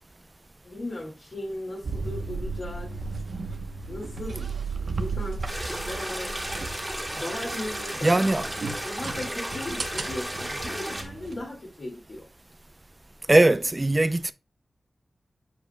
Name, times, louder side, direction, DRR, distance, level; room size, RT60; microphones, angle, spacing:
voice 1, 0.6-2.9 3.9-4.5 4.8-6.4 7.1-8.2 8.8-12.3, left 1 dB, 60° left, 1.9 m, -37 dB
sound 1, 1.8-11.4, right 4 dB, 75° right, 0.9 m, -35 dB
sound 2, 5.5-11.0, right 1 dB, 10° right, 1.8 m, -34 dB
voice 2, 8.0-8.5 13.3-14.3, right 2 dB, 25° right, 0.4 m, -20 dB
8.6 x 5.1 x 2.2 m
wide cardioid pair, 85°, 0 cm